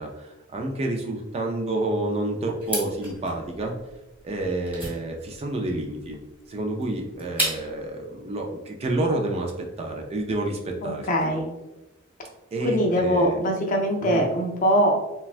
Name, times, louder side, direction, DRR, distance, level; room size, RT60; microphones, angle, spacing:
voice 1, 0.0-3.8 4.2-6.2 6.5-11.4 12.5-13.4 14.0-14.3, right 2 dB, 30° right, 2 dB, 0.3 m, -29 dB
sound 1, 2.6-7.9, equal, 10° right, 1.1 m, -33 dB
voice 2, 10.8-11.5 12.6-14.9, equal, 40° left, 0 dB, 0.5 m, -22 dB
3.3 x 2.1 x 2.4 m, 1.0 s
head